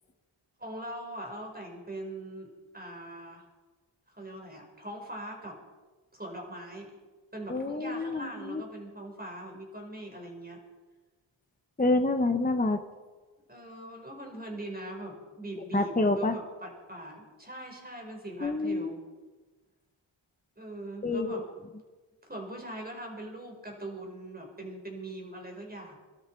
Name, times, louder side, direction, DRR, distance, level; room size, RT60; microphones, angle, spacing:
voice 1, 0.6-3.4 4.1-5.6 6.1-7.0 7.3-10.6 13.5-19.0 20.6-21.5 22.2-26.0, right 1 dB, 20° right, 1 dB, 5.1 m, -41 dB
voice 2, 7.5-8.6 11.8-12.8 15.7-16.4 18.4-18.9 21.0-21.4, left 2 dB, 15° left, 6 dB, 1.2 m, -27 dB
24.0 x 12.5 x 4.7 m, 1.3 s
cardioid pair, 65°, 49 cm